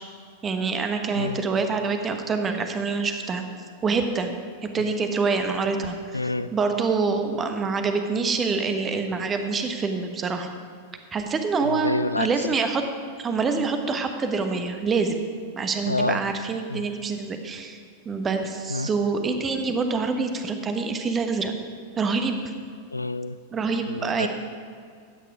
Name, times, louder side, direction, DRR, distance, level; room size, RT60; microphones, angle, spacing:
voice 1, 0.4-3.5 3.8-4.3 4.6-10.5 11.1-12.8 13.2-15.2 15.5-17.8 18.0-21.5 22.0-22.4 23.5-24.3, right 4 dB, 20° right, 6 dB, 1.1 m, -26 dB
voice 2, 6.1-6.5 11.6-12.3 15.9-16.2 16.7-16.9 18.7-18.9 22.9-23.4 23.9-24.3, left 2 dB, 85° left, 14 dB, 0.3 m, -27 dB
13.0 x 9.1 x 4.9 m, 2.2 s
figure-of-eight pair, 90°, 0 cm